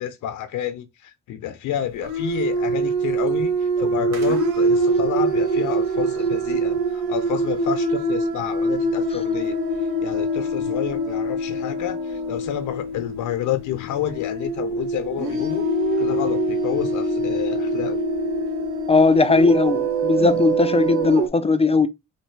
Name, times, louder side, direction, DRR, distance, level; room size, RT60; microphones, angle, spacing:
voice 1, 0.0-15.7 16.0-18.0, left 11 dB, 80° left, 0.6 m, -30 dB
sound 1, 2.0-21.3, right 2 dB, 75° right, 1.3 m, -24 dB
voice 2, 18.9-21.9, left 4 dB, 20° left, 0.4 m, -18 dB
3.2 x 2.6 x 4.4 m
cardioid pair, 90°, 30 cm